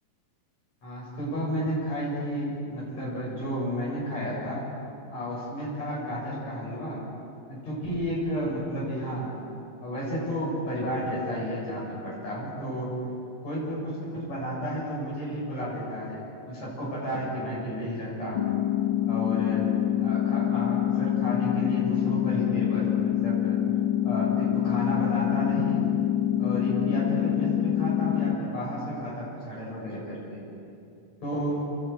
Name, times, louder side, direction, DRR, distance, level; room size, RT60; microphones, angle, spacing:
voice 1, 0.8-4.6 5.1-7.0 7.5-9.3 9.8-12.9 13.4-18.5 19.1-19.6 20.0-23.6 24.0-25.8 26.4-30.4 31.2-31.6, equal, 50° left, -5 dB, 8.3 m, -32 dB
sound 1, 18.3-28.4, left 11 dB, 65° left, 1.2 m, -25 dB
29.0 x 11.5 x 9.5 m, 2.6 s
omnidirectional pair, 4.0 m